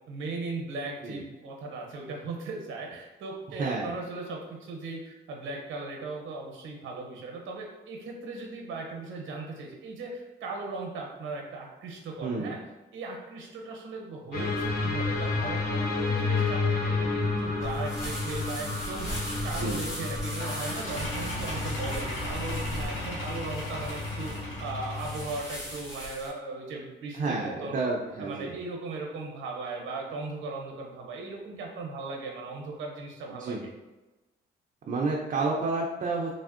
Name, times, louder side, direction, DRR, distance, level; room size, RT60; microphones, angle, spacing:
voice 1, 0.1-12.6 12.9-19.1 19.4-24.3 24.6-27.9 28.2-33.7, right 3 dB, 80° right, 0 dB, 0.7 m, -38 dB
sound 1, 14.3-25.4, left 3 dB, 50° left, 0.8 m, -31 dB
sound 2, 17.3-26.3, equal, 15° left, 1.1 m, -39 dB
sound 3, 20.4-25.9, equal, 85° left, 0.9 m, -37 dB
voice 2, 27.2-28.5 33.4-33.6 34.9-36.3, right 3 dB, 40° right, -2 dB, 0.4 m, -30 dB
3.4 x 2.0 x 2.4 m, 1.1 s
cardioid pair, 90°, 20 cm